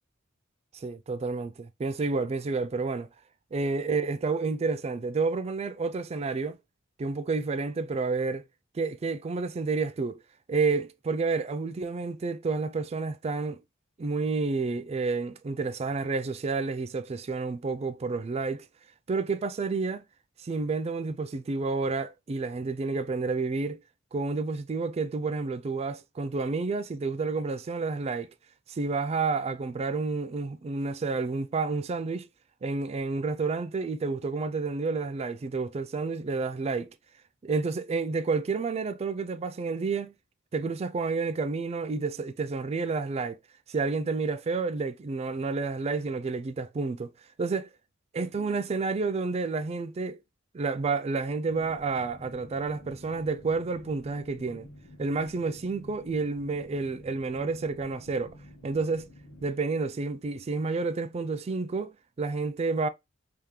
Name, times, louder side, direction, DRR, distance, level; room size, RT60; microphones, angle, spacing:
voice 1, 0.7-3.1 3.5-6.6 7.0-8.4 8.7-10.2 10.5-13.6 14.0-18.6 19.1-20.0 20.4-23.8 24.1-28.3 28.7-32.3 32.6-36.9 37.4-40.1 40.5-43.4 43.7-47.1 47.4-47.7 48.1-50.2 50.5-54.7 55.0-58.3 58.6-59.1 59.4-62.9, right 4 dB, 30° right, 0.3 m, -30 dB
sound 1, 51.5-59.5, left 1 dB, 65° left, 1.0 m, -50 dB
3.6 x 2.8 x 3.2 m
head